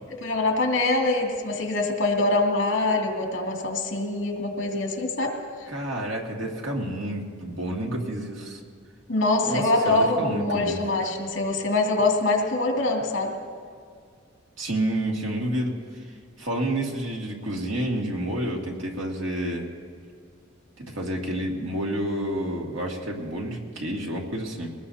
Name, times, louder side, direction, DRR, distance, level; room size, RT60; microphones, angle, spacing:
voice 1, 0.2-5.4 9.1-13.3, left 2 dB, 70° left, 0 dB, 2.5 m, -24 dB
voice 2, 5.7-8.6 9.4-10.8 14.6-15.8 16.4-19.7 20.8-24.8, right 1 dB, 85° right, -1 dB, 2.3 m, -29 dB
22.0 x 19.0 x 2.8 m, 2.2 s
head